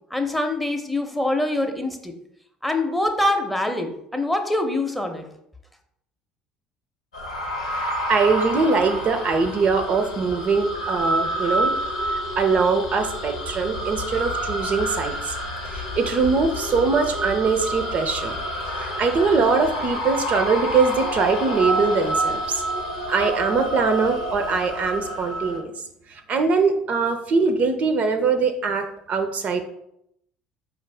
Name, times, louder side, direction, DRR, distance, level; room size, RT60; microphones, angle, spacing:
voice 1, 0.1-2.1 2.6-5.3, left 1 dB, 5° left, 6 dB, 0.6 m, -24 dB
sound 1, 7.1-25.6, right 1 dB, 80° left, 0.7 m, -28 dB
voice 2, 7.7-11.7 12.0-15.3 15.7-18.4 18.8-22.6 23.1-25.7 26.1-29.6, right 4 dB, 45° right, 7 dB, 0.4 m, -22 dB
5.1 x 2.5 x 3.3 m, 0.76 s
figure-of-eight pair, 55°, 3 cm